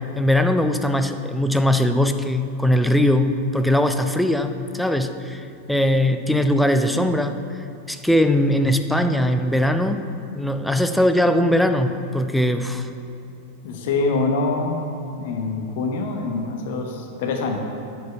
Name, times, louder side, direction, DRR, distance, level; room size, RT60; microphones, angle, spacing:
voice 1, 0.0-7.4 7.9-10.1 10.3-12.9, left 1 dB, ahead, 8 dB, 0.5 m, -20 dB
voice 2, 13.6-14.8 15.2-17.6, left 3 dB, 50° left, 3 dB, 0.9 m, -25 dB
9.3 x 6.8 x 5.6 m, 2.8 s
figure-of-eight pair, 90°, 0 cm